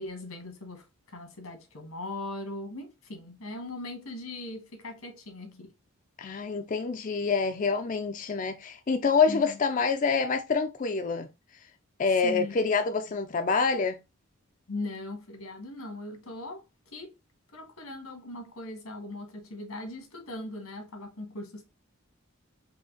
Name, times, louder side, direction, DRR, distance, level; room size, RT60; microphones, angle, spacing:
voice 1, 0.0-5.7 9.3-9.6 12.2-12.5 14.7-17.2 17.5-21.6, left 2 dB, 90° left, 1.7 m, -39 dB
voice 2, 6.2-11.3 12.0-14.0, left 5 dB, 35° left, 0.4 m, -26 dB
4.9 x 2.8 x 3.7 m
head